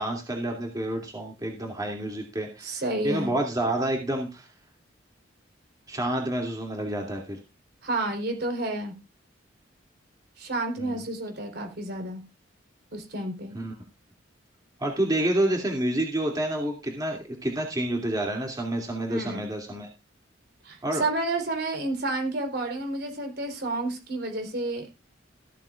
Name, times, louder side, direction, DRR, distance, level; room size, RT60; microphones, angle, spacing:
voice 1, 0.0-4.5 5.9-7.4 10.8-11.0 13.5-13.7 14.8-19.9 20.8-21.0, right 1 dB, 20° right, 1 dB, 2.7 m, -29 dB
voice 2, 2.6-3.3 7.8-8.9 10.4-12.2 12.9-13.5 19.1-19.5 20.6-24.9, right 2 dB, 60° right, 5 dB, 4.1 m, -30 dB
15.5 x 13.0 x 2.5 m, 0.27 s
head